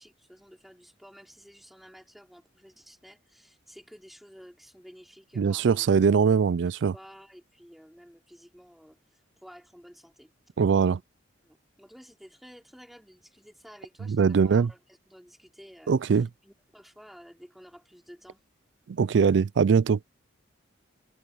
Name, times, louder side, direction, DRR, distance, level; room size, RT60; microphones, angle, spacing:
voice 1, 0.0-5.9 6.6-9.0 9.4-10.3 11.4-18.4, equal, ahead, 4.3 m, -52 dB
voice 2, 5.4-6.9 10.6-11.0 14.1-14.7 15.9-16.3 18.9-20.0, right 6 dB, 65° right, 0.4 m, -22 dB
head